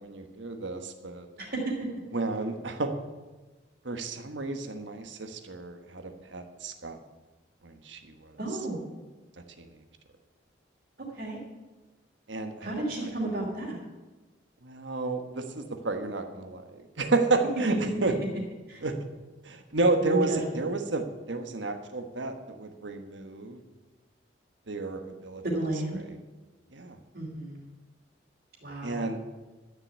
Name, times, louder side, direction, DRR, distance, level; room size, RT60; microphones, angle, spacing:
voice 1, 0.0-1.3 2.1-2.9 3.8-7.0 7.6-8.4 9.6-9.7 12.3-12.7 13.0-13.1 14.6-18.1 18.8-19.0 19.4-23.6 24.7-25.4 26.7-27.0 28.8-29.2, right 3 dB, 80° right, 6 dB, 1.4 m, -31 dB
voice 2, 1.4-1.7 8.4-8.9 11.1-11.4 12.6-13.8 18.7-18.8 20.0-20.6 25.4-26.0 27.1-27.7 28.6-29.1, right 1 dB, 55° right, -6 dB, 2.8 m, -32 dB
12.5 x 6.9 x 8.5 m, 1.2 s
head